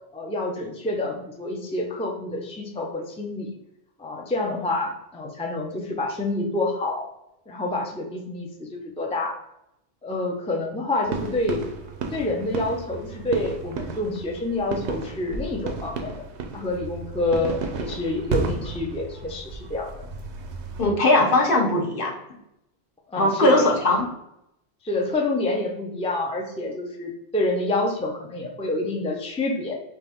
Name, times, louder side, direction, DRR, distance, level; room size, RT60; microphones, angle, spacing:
voice 1, 0.1-3.5 4.0-7.1 7.5-9.4 10.0-11.6 12.1-16.3 16.5-19.9 23.1-23.7 24.8-29.7, left 2 dB, 10° left, 0 dB, 0.5 m, -27 dB
sound 1, 11.1-20.9, right 4 dB, 80° right, 1.0 m, -33 dB
voice 2, 20.8-22.1 23.2-24.1, left 1 dB, 55° left, 0 dB, 1.1 m, -19 dB
4.4 x 3.2 x 3.5 m, 0.82 s
omnidirectional pair, 1.1 m